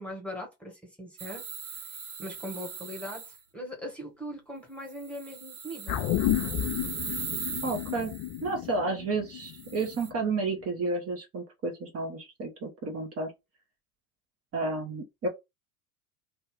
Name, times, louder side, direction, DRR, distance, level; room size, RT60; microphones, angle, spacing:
voice 1, 0.0-1.4 1.7-1.9 2.2-6.0, equal, 5° left, 1.2 m, -40 dB
sound 1, 1.2-3.4 4.9-8.4 9.4-10.1, right 6 dB, 80° right, 1.0 m, -39 dB
sound 2, 5.9-10.5 10.8-10.9, left 13 dB, 40° left, 0.5 m, -32 dB
voice 2, 7.6-8.1 8.4-13.3 14.5-15.3, right 3 dB, 30° right, 1.0 m, -31 dB
2.7 x 2.4 x 3.6 m
hypercardioid pair, 75°, 44 cm